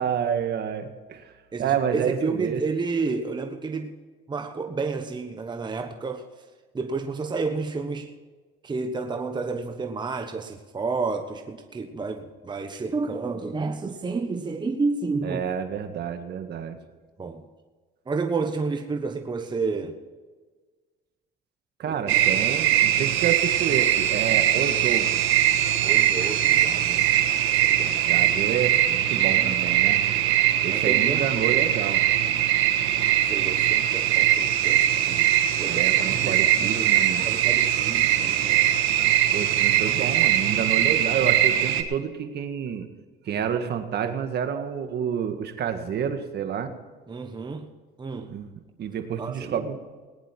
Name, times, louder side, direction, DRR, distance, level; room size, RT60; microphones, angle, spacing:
voice 1, 0.0-1.3 1.6-2.6 15.2-16.8 21.8-25.3 28.0-30.0 30.6-32.0 35.7-37.3 39.3-42.9 43.2-46.7 48.3-48.5 48.8-49.8, right 8 dB, 55° right, 7 dB, 1.7 m, -29 dB
voice 2, 1.5-4.0 4.3-6.3 6.7-8.1 8.6-15.4 17.2-17.4 18.1-20.0 21.8-22.2 25.8-27.3 27.6-28.0 29.1-29.5 30.7-31.5 33.3-35.3 35.6-38.7 47.1-47.7 48.0-48.4 49.2-49.6, right 4 dB, 20° right, 6 dB, 1.2 m, -31 dB
sound 1, 22.1-41.8, right 12 dB, 85° right, 1.5 m, -21 dB
19.5 x 10.0 x 4.5 m, 1.4 s
cardioid pair, 100°, 20 cm